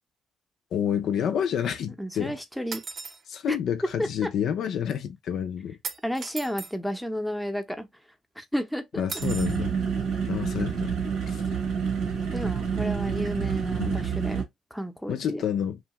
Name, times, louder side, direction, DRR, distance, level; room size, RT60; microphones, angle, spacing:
voice 1, 0.7-2.4 3.3-5.8 9.0-9.7 10.3-10.9 11.3-11.4 13.8-14.0 15.1-15.8, left 8 dB, 75° left, 0.4 m, -29 dB
voice 2, 2.0-2.8 3.5-3.6 6.0-7.9 8.4-9.0 12.3-15.4, equal, ahead, 0.6 m, -32 dB
sound 1, 2.7-3.2 5.8-6.7 9.1-9.6, right 5 dB, 55° right, 0.5 m, -37 dB
sound 2, 9.2-14.4, right 6 dB, 90° right, 1.0 m, -28 dB
2.8 x 2.2 x 2.8 m
cardioid pair, 90°, 0 cm